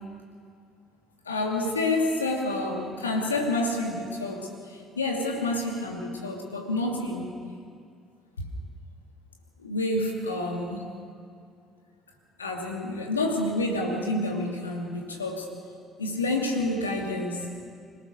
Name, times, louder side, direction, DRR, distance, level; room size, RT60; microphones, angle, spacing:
voice 1, 1.3-7.4 8.4-8.5 9.6-10.9 12.4-15.5 16.0-17.5, left 2 dB, 85° left, 1 dB, 2.4 m, -28 dB
25.5 x 18.0 x 6.6 m, 2.2 s
figure-of-eight pair, 50°, 0 cm